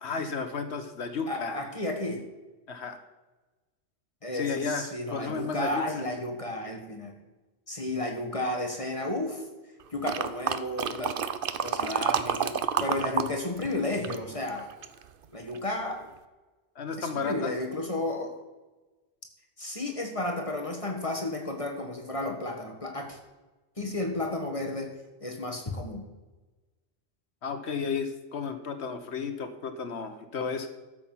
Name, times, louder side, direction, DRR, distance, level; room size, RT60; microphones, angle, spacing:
voice 1, 0.0-1.6 2.7-3.0 4.3-6.0 16.8-17.5 27.4-30.7, left 5 dB, 70° left, 8 dB, 1.2 m, -33 dB
voice 2, 1.3-2.2 4.2-7.1 7.7-9.4 9.9-11.1 11.6-14.7 15.3-16.1 17.0-18.3 19.6-23.2 23.8-24.9 25.2-26.0, left 1 dB, 30° left, 2 dB, 1.7 m, -32 dB
sound 1, 10.0-13.3 13.6-15.0 15.5-15.6, right 7 dB, 55° right, 0.8 m, -29 dB
12.5 x 7.5 x 5.7 m, 1.2 s
omnidirectional pair, 1.2 m